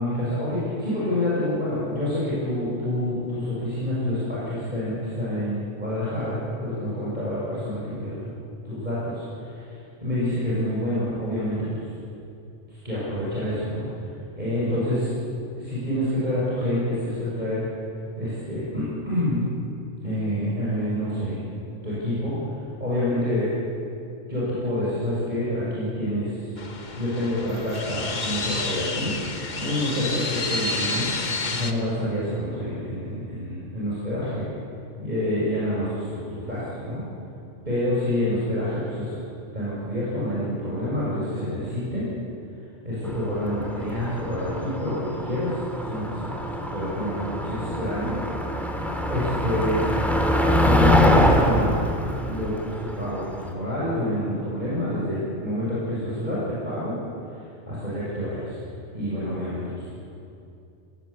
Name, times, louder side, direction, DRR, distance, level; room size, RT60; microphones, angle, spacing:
voice 1, 0.0-8.3 8.6-11.8 12.7-13.9 14.3-15.1 15.6-17.7 18.2-19.5 20.0-21.4 21.8-22.4 22.8-23.5 24.3-26.5 27.0-29.2 29.6-31.1 31.5-34.5 35.0-37.0 37.7-39.2 39.5-42.1 42.8-46.4 46.7-48.2 49.1-49.9 50.6-51.8 52.3-57.0 57.7-58.6 58.9-59.7, left 1 dB, 35° right, -9 dB, 7.0 m, -27 dB
sound 1, 26.6-31.7, left 3 dB, 40° left, 1.4 m, -30 dB
Motor vehicle (road), 43.1-53.5, left 1 dB, ahead, 2.6 m, -24 dB
27.5 x 18.5 x 8.5 m, 2.6 s
omnidirectional pair, 1.2 m